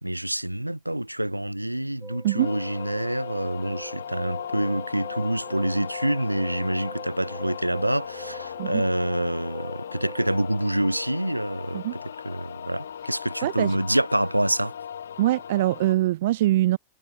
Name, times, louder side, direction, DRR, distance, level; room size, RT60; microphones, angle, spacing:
voice 1, 0.0-14.7, right 1 dB, 85° right, 1.2 m, -27 dB
sound 1, 2.0-10.4, right 4 dB, 10° right, 0.7 m, -44 dB
sound 2, 2.4-15.9, left 8 dB, 65° left, 0.5 m, -38 dB
voice 2, 13.4-13.8 15.2-16.8, right 15 dB, 55° right, 0.3 m, -23 dB
figure-of-eight pair, 90°, 0 cm